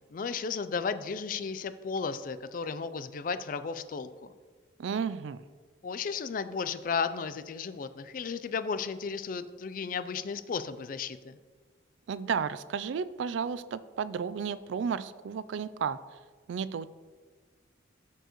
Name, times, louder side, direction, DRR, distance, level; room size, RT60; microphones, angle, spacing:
voice 1, 0.1-4.3 5.8-11.4, left 5 dB, 45° left, 12 dB, 0.3 m, -34 dB
voice 2, 4.8-5.4 12.1-16.0 16.5-16.9, right 6 dB, 80° right, 16 dB, 0.3 m, -33 dB
13.0 x 4.6 x 3.0 m, 1.4 s
head